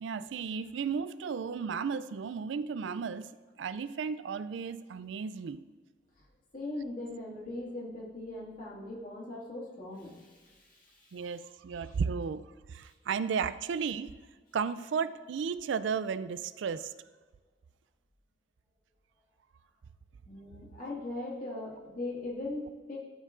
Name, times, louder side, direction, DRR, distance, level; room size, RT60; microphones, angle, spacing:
voice 1, 0.0-3.3 3.6-5.6 11.1-14.1 14.5-16.9 21.5-21.6, right 6 dB, 75° right, 14 dB, 0.4 m, -34 dB
voice 2, 6.5-11.3 11.8-11.9 20.3-22.6 22.9-23.0, left 2 dB, 45° left, -5 dB, 2.1 m, -40 dB
13.0 x 5.4 x 2.5 m, 1.4 s
head